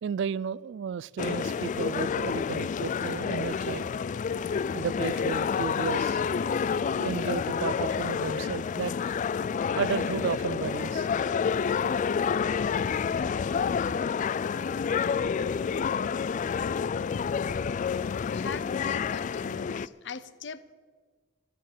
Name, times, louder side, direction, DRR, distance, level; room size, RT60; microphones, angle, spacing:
voice 1, 0.0-3.9 4.7-6.2 7.0-8.9 9.8-11.1, right 7 dB, 65° right, 23 dB, 0.3 m, -33 dB
sound 1, 1.2-19.9, left 6 dB, 40° left, 0.3 m, -29 dB
voice 2, 18.3-20.7, left 5 dB, 65° left, 15 dB, 0.7 m, -40 dB
11.5 x 11.0 x 8.4 m, 1.5 s
head